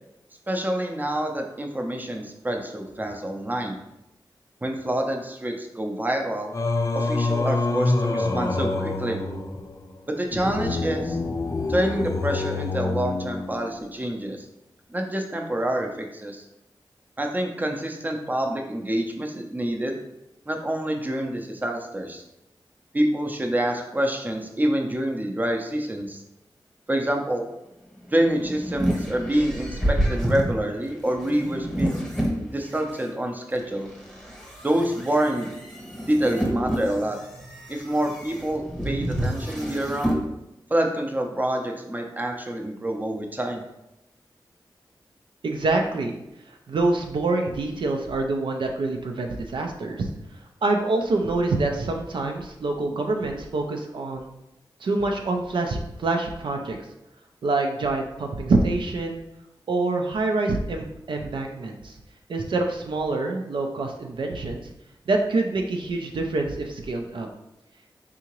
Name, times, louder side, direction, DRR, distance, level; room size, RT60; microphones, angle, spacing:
voice 1, 0.5-3.8 4.6-6.5 6.9-9.2 10.1-11.2 11.7-14.5 14.9-16.4 17.2-20.0 20.5-22.2 22.9-26.2 26.9-27.4 28.1-32.0 32.5-33.9 34.6-35.5 36.0-37.2 37.7-40.2 40.7-43.6, right 1 dB, 20° right, 2 dB, 0.5 m, -27 dB
Singing, 6.5-13.9, left 3 dB, 40° left, 0.4 m, -26 dB
sound 1, 28.0-33.0 33.6-40.2, equal, 5° left, 1.0 m, -29 dB
voice 2, 45.4-46.2 46.7-50.1 50.6-54.3 54.8-56.8 57.4-59.2 59.7-61.9 62.3-64.7 65.1-67.3, right 2 dB, 75° right, 2 dB, 0.4 m, -26 dB
3.6 x 2.8 x 3.0 m, 0.88 s
cardioid pair, 60°, 9 cm